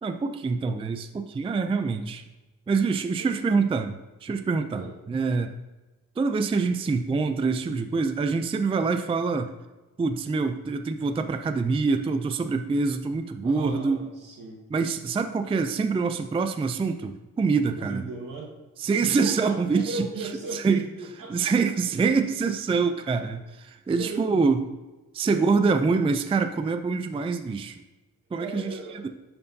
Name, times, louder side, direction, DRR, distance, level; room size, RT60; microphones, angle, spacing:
voice 1, 0.0-2.2 2.7-5.5 6.2-9.5 10.0-14.0 14.7-18.1 18.8-20.9 21.3-24.6 25.1-27.8 28.3-29.1, right 4 dB, 15° right, 8 dB, 0.3 m, -25 dB
voice 2, 3.2-3.7 4.7-4.9 13.4-14.6 17.7-18.5 19.0-21.5 24.0-24.3 25.2-25.5 28.4-29.0, right 2 dB, 70° right, -2 dB, 1.7 m, -37 dB
11.0 x 4.4 x 2.7 m, 1.1 s
cardioid pair, 95°, 33 cm